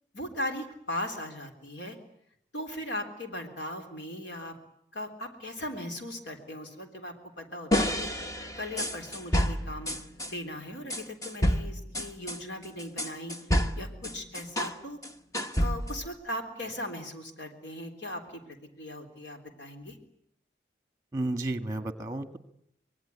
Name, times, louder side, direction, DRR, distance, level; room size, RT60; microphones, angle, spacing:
voice 1, 0.1-2.0 2.5-4.6 4.9-8.1 8.6-10.0 10.3-15.0 15.6-20.0, left 1 dB, 85° left, 4 dB, 3.6 m, -38 dB
sound 1, 7.7-10.3 10.9-14.8 15.0-16.1, equal, 20° left, 1.1 m, -29 dB
voice 2, 21.1-22.4, right 2 dB, 20° right, 9 dB, 1.5 m, -32 dB
25.5 x 21.5 x 9.6 m, 0.75 s
head